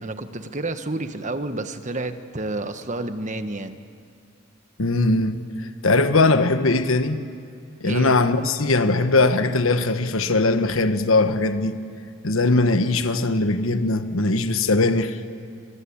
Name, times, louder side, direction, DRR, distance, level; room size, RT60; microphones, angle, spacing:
voice 1, 0.0-3.8 7.8-8.2, right 2 dB, 35° right, 1.3 m, -30 dB
voice 2, 4.8-5.4 5.8-7.2 7.8-11.8 12.2-15.2, left 2 dB, 75° left, 1.3 m, -20 dB
27.0 x 23.5 x 8.7 m
head